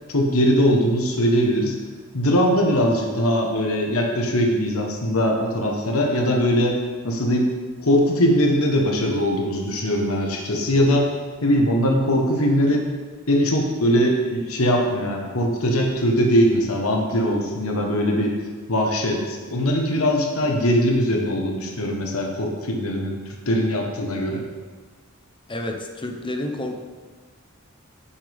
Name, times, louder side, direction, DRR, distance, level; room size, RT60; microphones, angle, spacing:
voice 1, 0.1-1.7 2.1-6.7 7.0-7.5 7.8-11.1 11.4-12.8 13.3-18.3 18.7-23.2 23.5-24.4, equal, 80° left, 1 dB, 1.3 m, -21 dB
voice 2, 25.5-26.7, left 1 dB, 25° left, 4 dB, 0.8 m, -29 dB
10.5 x 7.1 x 3.5 m, 1.4 s
head